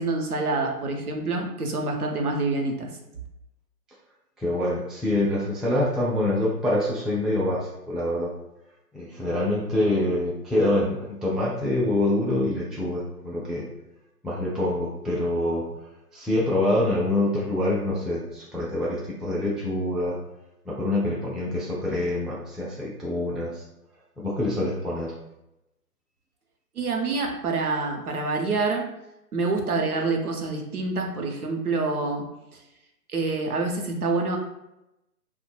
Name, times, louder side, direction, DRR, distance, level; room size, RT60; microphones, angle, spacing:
voice 1, 0.0-2.9 26.8-28.8 29.3-32.2 33.1-34.4, right 3 dB, 65° right, 2 dB, 0.7 m, -26 dB
voice 2, 4.4-8.3 8.9-13.7 14.2-15.7 16.1-20.2 20.7-23.6 24.2-25.1, left 1 dB, ahead, -6 dB, 0.3 m, -25 dB
2.6 x 2.1 x 3.1 m, 0.89 s
hypercardioid pair, 170°, 48 cm